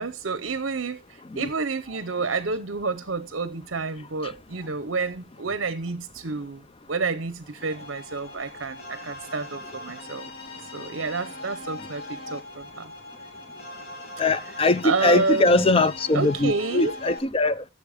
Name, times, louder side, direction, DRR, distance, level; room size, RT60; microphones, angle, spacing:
voice 1, 0.0-6.6 6.9-10.3 10.6-12.9 14.8-15.8 16.1-16.9, right 4 dB, 65° right, 0.8 m, -29 dB
sound 1, 7.6-17.2, left 2 dB, 50° left, 2.7 m, -40 dB
voice 2, 14.2-17.6, left 2 dB, 30° left, 0.5 m, -21 dB
15.0 x 7.0 x 5.1 m
head